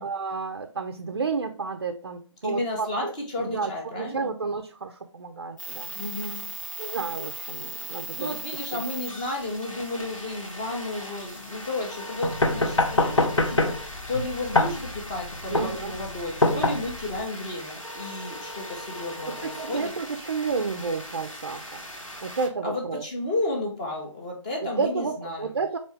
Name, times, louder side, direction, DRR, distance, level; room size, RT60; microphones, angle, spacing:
voice 1, 0.0-3.1 3.4-5.9 6.8-8.4 8.7-8.8 15.5-15.9 19.3-21.8 22.2-23.0 24.8-25.8, right 4 dB, 45° right, 6 dB, 0.4 m, -31 dB
voice 2, 2.4-4.3 5.9-6.5 8.2-19.9 22.6-25.5, left 2 dB, 15° left, 0 dB, 0.5 m, -32 dB
sound 1, 5.6-22.5, equal, 90° left, 1.2 m, -39 dB
sound 2, 12.2-17.2, left 2 dB, 65° left, 0.7 m, -24 dB
4.3 x 2.8 x 3.1 m, 0.40 s
figure-of-eight pair, 145°, 16 cm